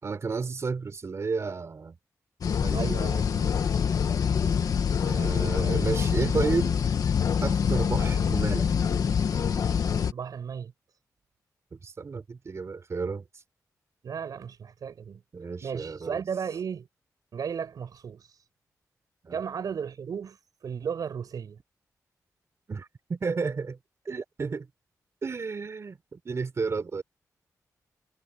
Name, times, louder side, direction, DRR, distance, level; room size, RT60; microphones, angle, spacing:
voice 1, 0.0-2.0 2.6-3.0 5.0-6.8 7.4-8.9 9.4-9.5 11.7-13.4 15.3-16.2 19.2-19.4 22.7-23.8 24.0-24.7 25.2-27.0, right 4 dB, 50° right, 4.1 m, -32 dB
sound 1, 2.4-10.1, left 7 dB, 75° left, 1.8 m, -25 dB
voice 2, 2.7-3.5 10.1-10.7 14.0-15.2 15.6-16.9 17.3-18.3 19.3-20.4 20.6-21.6, right 7 dB, 75° right, 5.4 m, -34 dB
wide cardioid pair, 100°, 6 cm